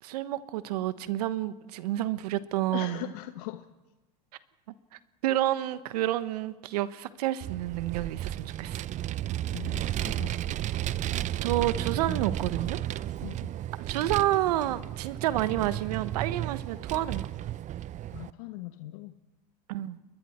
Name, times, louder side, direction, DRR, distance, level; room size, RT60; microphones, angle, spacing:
voice 1, 0.0-3.0 5.2-8.9 11.4-12.8 13.8-17.3 19.7-20.0, right 14 dB, 75° right, 1.2 m, -29 dB
voice 2, 2.7-3.7 9.5-10.6 13.2-13.5 18.1-19.2, left 16 dB, 65° left, 1.1 m, -40 dB
Vehicle, 7.4-18.3, right 13 dB, 35° right, 0.6 m, -33 dB
29.5 x 22.0 x 4.5 m
hypercardioid pair, 95°, 20 cm